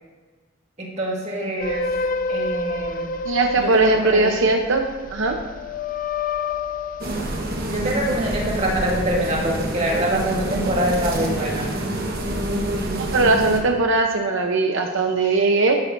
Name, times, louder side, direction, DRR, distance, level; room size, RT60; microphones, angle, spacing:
voice 1, 0.8-1.8 2.3-3.1 3.6-4.4 7.7-11.7, right 1 dB, 35° right, -2 dB, 1.8 m, -24 dB
sound 1, 1.6-8.3 8.7-9.6, left 3 dB, 40° left, 0.4 m, -29 dB
voice 2, 3.2-4.9 5.1-5.4 13.0-15.8, right 3 dB, 75° right, 3 dB, 0.8 m, -19 dB
sound 2, 7.0-13.6, right 1 dB, 50° right, 1.3 m, -27 dB
11.5 x 10.5 x 2.6 m, 1.4 s
head